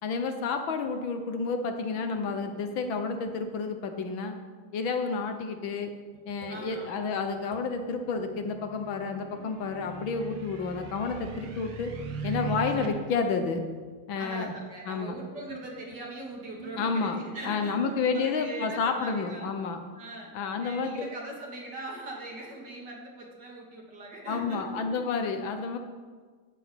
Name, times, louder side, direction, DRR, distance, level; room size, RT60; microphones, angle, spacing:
voice 1, 0.0-4.3 4.7-5.9 6.3-11.9 12.2-13.6 14.1-14.5 14.9-15.2 16.8-17.2 17.4-19.8 20.3-21.0 24.3-25.8, left 5 dB, 70° left, 6 dB, 1.7 m, -30 dB
sound 1, 1.9-4.5 6.1-9.1 10.5-17.9, right 5 dB, 70° right, 0.6 m, -51 dB
voice 2, 6.5-7.0 14.2-19.6 20.0-20.3 20.6-25.0, right 1 dB, 55° right, -2 dB, 3.0 m, -41 dB
sound 2, 7.9-12.9, right 5 dB, 90° right, 2.2 m, -39 dB
11.5 x 6.3 x 8.7 m, 1.5 s
omnidirectional pair, 2.3 m